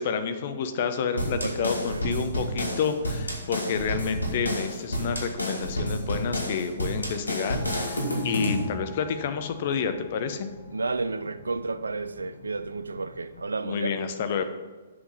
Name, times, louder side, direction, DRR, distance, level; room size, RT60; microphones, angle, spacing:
voice 1, 0.0-10.5 13.6-14.4, left 6 dB, 50° left, 8 dB, 0.9 m, -29 dB
sound 1, 1.2-8.7, equal, 90° left, 1.9 m, -30 dB
voice 2, 1.3-2.1 10.7-14.0, right 3 dB, 80° right, 13 dB, 0.5 m, -32 dB
sound 2, 7.6-13.6, left 5 dB, 75° left, 1.1 m, -46 dB
7.8 x 6.2 x 5.5 m, 1.3 s
figure-of-eight pair, 125°, 0 cm